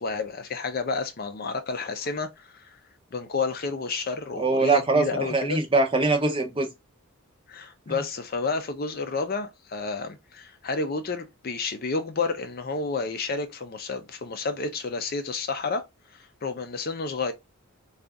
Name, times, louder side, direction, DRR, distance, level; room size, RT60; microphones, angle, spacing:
voice 1, 0.0-2.8 3.1-5.6 7.5-15.9 16.1-17.3, left 4 dB, 40° left, 0.5 m, -30 dB
voice 2, 4.4-6.7, right 3 dB, 25° right, 0.6 m, -22 dB
3.8 x 2.4 x 3.4 m
head